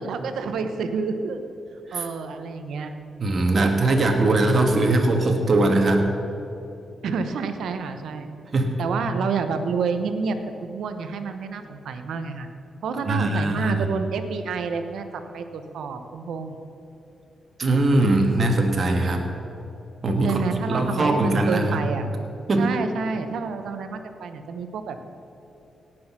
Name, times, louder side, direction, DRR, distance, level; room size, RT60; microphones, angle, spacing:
voice 1, 0.0-1.4 1.9-2.9 7.0-8.3 8.8-10.4 10.6-12.5 12.8-16.6 20.2-22.1 22.6-25.0, right 5 dB, 80° right, 8 dB, 0.9 m, -29 dB
voice 2, 3.2-6.1 8.5-8.8 13.0-13.8 17.6-19.3 20.0-20.4 20.7-21.8 22.5-22.7, right 2 dB, 50° right, 3 dB, 1.7 m, -21 dB
17.5 x 6.3 x 6.1 m, 2.8 s
supercardioid pair, 50°, 0 cm